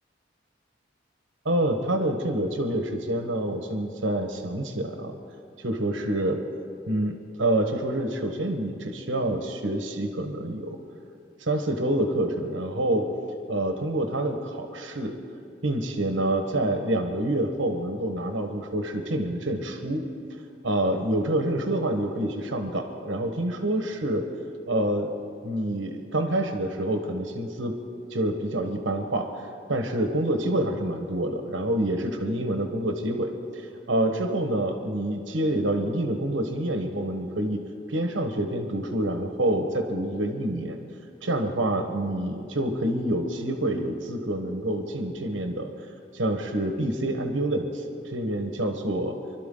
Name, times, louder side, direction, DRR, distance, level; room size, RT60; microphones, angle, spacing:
voice 1, 1.4-5.2 5.6-6.4 6.9-10.8 11.4-13.1 13.5-15.2 15.6-20.0 20.6-24.3 24.7-25.1 25.4-27.7 28.1-29.3 29.7-37.6 37.9-40.8 41.2-45.7 46.1-49.2, right 1 dB, 75° right, 5 dB, 1.3 m, -27 dB
25.0 x 12.5 x 3.9 m, 2.4 s
head